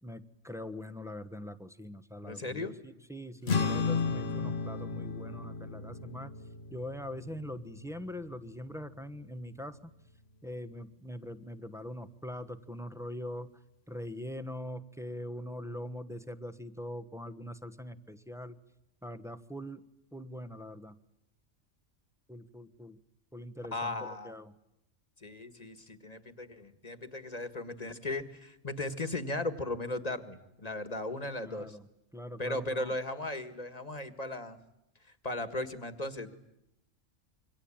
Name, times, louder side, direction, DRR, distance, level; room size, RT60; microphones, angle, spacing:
voice 1, 0.0-6.3 6.7-9.9 10.4-18.6 19.0-19.8 20.1-21.0 22.3-23.0 23.3-24.5 31.4-31.9 32.1-32.9, left 1 dB, ahead, 9 dB, 1.1 m, -42 dB
voice 2, 2.2-2.8 23.7-24.3 25.2-31.8 32.4-34.6 35.0-36.3, left 2 dB, 30° left, 10 dB, 1.8 m, -37 dB
sound 1, 3.4-10.1, left 4 dB, 55° left, 1.5 m, -35 dB
27.5 x 24.0 x 8.8 m, 0.86 s
omnidirectional pair, 1.3 m